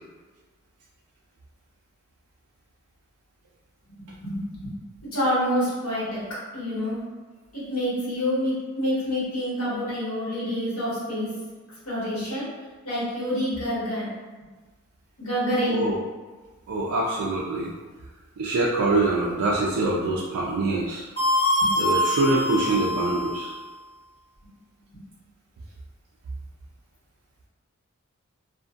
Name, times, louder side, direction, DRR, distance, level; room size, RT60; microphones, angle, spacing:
voice 1, 4.0-4.7 5.1-6.2 6.5-7.0 7.5-11.3 11.8-12.5 12.8-14.1 15.2-15.8 21.6-21.7, equal, 75° left, -9 dB, 1.4 m, -27 dB
voice 2, 16.7-17.7 18.4-21.0 21.8-23.5, right 2 dB, 85° right, -4 dB, 0.4 m, -24 dB
sound 1, 21.2-23.5, left 1 dB, 20° left, 1.4 m, -24 dB
2.5 x 2.4 x 2.4 m, 1.3 s
head